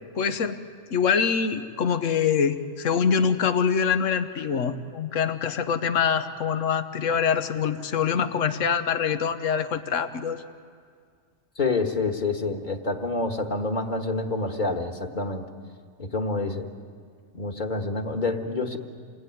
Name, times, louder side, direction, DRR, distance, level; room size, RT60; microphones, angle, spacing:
voice 1, 0.2-0.6 0.9-10.4, left 6 dB, 80° left, 9 dB, 1.3 m, -24 dB
voice 2, 11.6-15.4 16.0-16.7 17.3-18.8, left 3 dB, 40° left, 4 dB, 1.8 m, -27 dB
28.5 x 19.5 x 9.4 m, 2.2 s
omnidirectional pair, 1.3 m